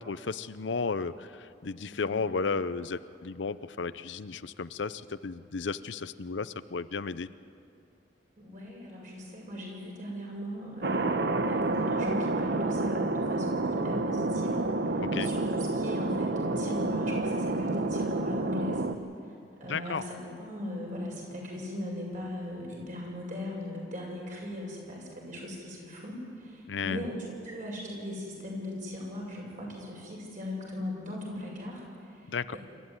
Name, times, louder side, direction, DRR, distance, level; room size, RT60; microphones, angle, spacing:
voice 1, 0.0-7.3 15.0-15.3 19.7-20.0 26.7-27.1 32.3-32.6, left 4 dB, 85° left, 14 dB, 0.7 m, -34 dB
voice 2, 1.9-2.2 8.4-14.7 14.9-18.9 19.6-27.2 27.4-31.8 32.1-32.2 32.5-32.6, left 1 dB, 45° right, -2 dB, 7.5 m, -39 dB
Thunder, 10.8-18.9, right 2 dB, 65° right, 1.0 m, -29 dB
27.0 x 14.0 x 9.7 m, 2.5 s
head